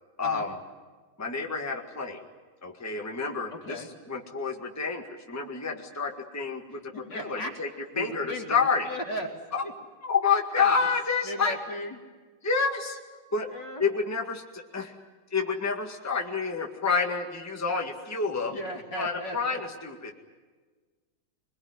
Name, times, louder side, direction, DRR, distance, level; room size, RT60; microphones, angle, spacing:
voice 1, 0.2-0.6 1.2-2.2 2.6-7.7 8.0-8.9 9.5-9.6 10.0-11.6 12.4-13.0 13.3-13.5 13.8-14.9 15.3-18.6 19.0-20.2, left 5 dB, 10° left, 2 dB, 1.8 m, -29 dB
voice 2, 3.5-3.9 6.9-7.5 7.9-9.3 9.6-9.7 10.6-10.7 11.2-12.0 13.5-13.8 18.4-19.6, left 1 dB, 60° left, 1 dB, 3.7 m, -36 dB
24.0 x 21.5 x 9.9 m, 1.4 s
omnidirectional pair, 2.1 m